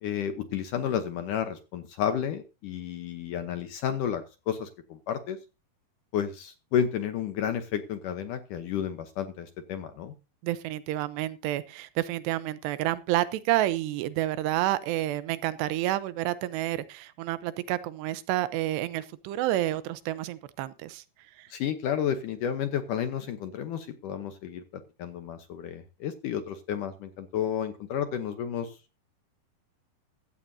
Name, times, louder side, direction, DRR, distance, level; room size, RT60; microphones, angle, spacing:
voice 1, 0.0-5.4 6.1-10.1 21.5-29.0, left 9 dB, 70° left, 2.0 m, -31 dB
voice 2, 10.4-21.0 21.4-21.5, right 14 dB, 90° right, 3.0 m, -29 dB
15.0 x 14.5 x 2.7 m
omnidirectional pair, 4.7 m